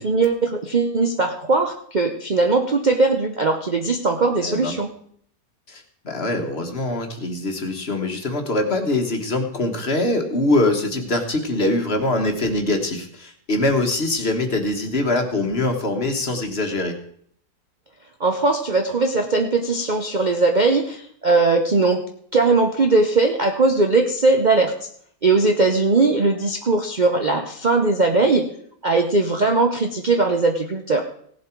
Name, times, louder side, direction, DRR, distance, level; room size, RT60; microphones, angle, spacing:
voice 1, 0.0-4.9 18.2-22.0 22.3-24.7 25.2-28.4 28.8-31.0, right 3 dB, 40° right, 4 dB, 0.7 m, -19 dB
voice 2, 4.4-4.7 5.7-16.9, left 2 dB, 40° left, 4 dB, 1.6 m, -23 dB
17.0 x 7.5 x 4.5 m, 0.64 s
omnidirectional pair, 1.7 m